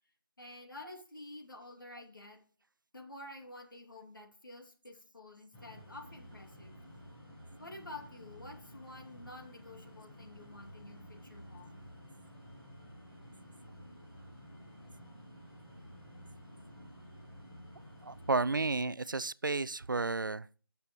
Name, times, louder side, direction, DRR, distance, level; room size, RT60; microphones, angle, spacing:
voice 1, 0.4-2.4 2.9-6.7 7.6-11.8, left 2 dB, 65° left, 2.8 m, -50 dB
sound 1, 5.5-18.8, equal, 5° left, 1.0 m, -52 dB
voice 2, 18.0-20.6, right 3 dB, 60° right, 0.4 m, -32 dB
15.5 x 6.8 x 3.1 m
figure-of-eight pair, 170°, 12 cm